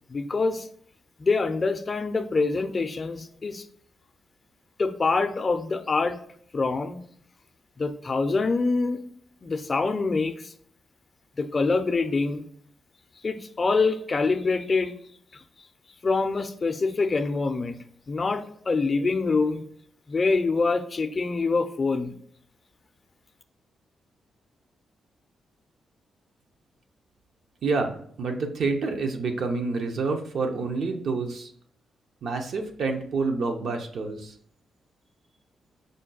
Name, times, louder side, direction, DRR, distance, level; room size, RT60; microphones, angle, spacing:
voice 1, 0.1-0.7 1.2-3.6 4.8-6.1 6.5-7.0 7.8-9.0 9.4-10.5 11.4-12.4 13.2-14.9 15.3-15.4 16.0-17.8 18.1-19.6 20.1-22.1, left 3 dB, 40° left, 9 dB, 0.4 m, -25 dB
voice 2, 27.6-31.5 32.2-34.3, right 4 dB, 70° right, 4 dB, 0.6 m, -28 dB
5.0 x 2.2 x 3.9 m, 0.63 s
cardioid pair, 80°, 0 cm